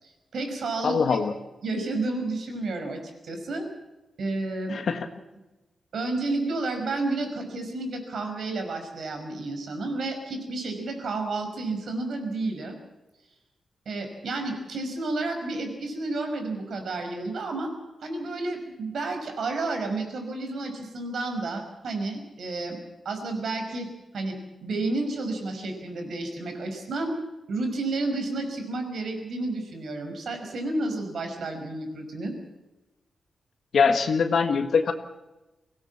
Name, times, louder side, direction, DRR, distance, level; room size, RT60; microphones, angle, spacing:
voice 1, 0.0-1.2 1.6-3.7 4.2-4.8 5.9-12.8 13.9-17.7 18.0-22.8 23.1-23.9 24.1-24.4 24.6-27.1 27.5-32.3, right 2 dB, 70° right, 5 dB, 5.4 m, -31 dB
voice 2, 0.8-1.3 4.7-5.1 33.7-34.9, left 5 dB, 65° left, 6 dB, 1.6 m, -22 dB
24.0 x 17.0 x 7.3 m, 1.1 s
wide cardioid pair, 120°, 0 cm